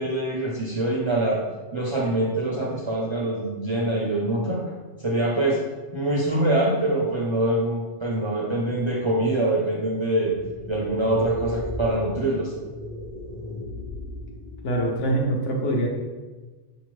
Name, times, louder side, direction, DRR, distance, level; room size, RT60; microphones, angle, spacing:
voice 1, 0.0-1.4 1.7-4.6 5.0-5.6 5.9-10.3 10.7-12.5, right 1 dB, 40° right, -3 dB, 0.4 m, -24 dB
sound 1, 10.2-15.1, left 2 dB, 40° left, 0.4 m, -36 dB
voice 2, 14.6-15.9, right 1 dB, 75° left, -1 dB, 1.0 m, -24 dB
5.5 x 2.8 x 3.1 m, 1.3 s
omnidirectional pair, 1.3 m